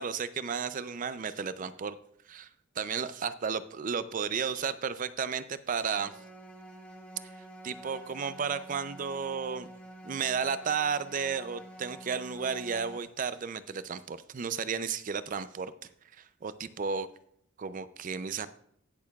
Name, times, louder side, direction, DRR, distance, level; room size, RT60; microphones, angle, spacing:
voice 1, 0.0-2.0 2.3-2.5 2.8-6.1 7.6-9.7 10.0-15.7 16.2-17.1 17.6-18.5, right 6 dB, 40° right, 14 dB, 0.4 m, -33 dB
sound 1, 6.0-13.0, right 1 dB, 5° left, 0.9 m, -48 dB
18.5 x 6.7 x 2.3 m, 0.69 s
head